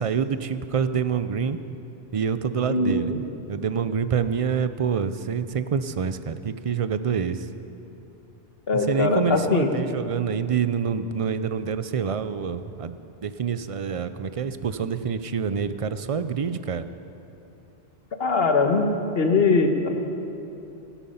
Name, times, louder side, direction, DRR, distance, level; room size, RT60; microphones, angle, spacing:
voice 1, 0.0-1.6 2.1-3.1 3.5-7.5 8.9-12.9 13.2-16.8, right 6 dB, 50° right, 12 dB, 0.4 m, -26 dB
voice 2, 2.7-3.2 8.7-10.0 18.2-18.9 19.1-19.9, left 3 dB, 60° left, 4 dB, 1.4 m, -21 dB
16.0 x 13.0 x 5.6 m, 2.8 s
omnidirectional pair, 1.1 m